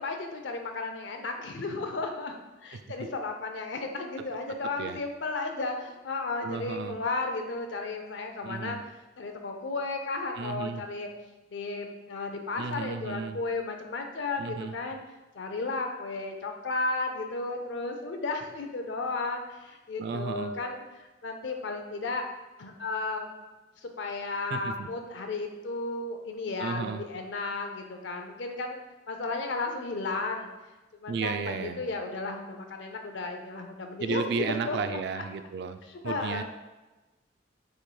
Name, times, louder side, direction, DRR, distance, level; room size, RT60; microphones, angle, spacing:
voice 1, 0.0-2.3 2.6-8.8 9.2-11.1 11.5-15.0 15.3-22.2 22.6-23.3 23.8-28.8 29.1-30.5 31.0-35.2 35.9-36.4, left 3 dB, 70° left, 4 dB, 0.5 m, -34 dB
voice 2, 6.4-6.9 8.4-8.8 10.4-10.8 12.6-13.4 14.4-14.8 20.0-20.5 24.5-24.9 26.6-27.0 31.1-31.8 34.0-36.4, right 5 dB, 60° right, 9 dB, 0.3 m, -33 dB
7.0 x 3.1 x 2.2 m, 1.1 s
head